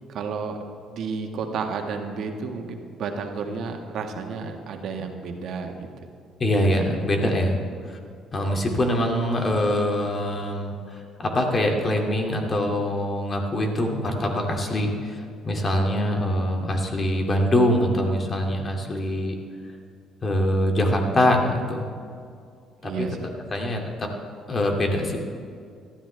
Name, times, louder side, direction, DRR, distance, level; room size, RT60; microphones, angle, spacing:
voice 1, 0.1-0.6 0.9-5.9 6.7-7.0 22.8-23.3, right 5 dB, 65° right, 3 dB, 1.5 m, -32 dB
voice 2, 6.4-8.0 8.3-19.4 20.2-21.9 22.8-23.1 23.5-24.1 24.5-25.2, left 1 dB, 35° left, 1 dB, 2.4 m, -24 dB
18.0 x 13.0 x 3.4 m, 2.3 s
cardioid pair, 85°, 0 cm